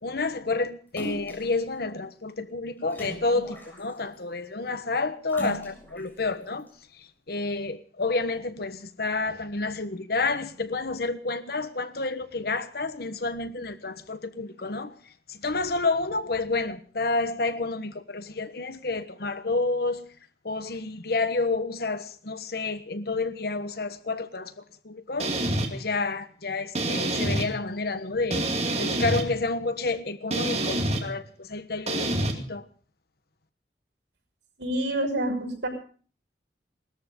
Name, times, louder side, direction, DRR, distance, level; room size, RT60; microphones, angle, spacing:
voice 1, 0.0-20.1 20.4-25.4 25.7-28.5 28.8-32.7, left 3 dB, 60° left, 1.3 m, -30 dB
Splash splatter, 1.0-1.6 2.9-4.1 5.3-6.1 6.7-6.8, right 1 dB, 10° left, 7.2 m, -39 dB
sound 1, 25.2-25.7 26.7-27.5 28.3-29.2 30.3-31.0 31.9-32.3, right 1 dB, 40° right, 2.5 m, -26 dB
voice 2, 34.6-35.7, right 1 dB, 85° right, 6.1 m, -27 dB
19.5 x 13.5 x 5.4 m
head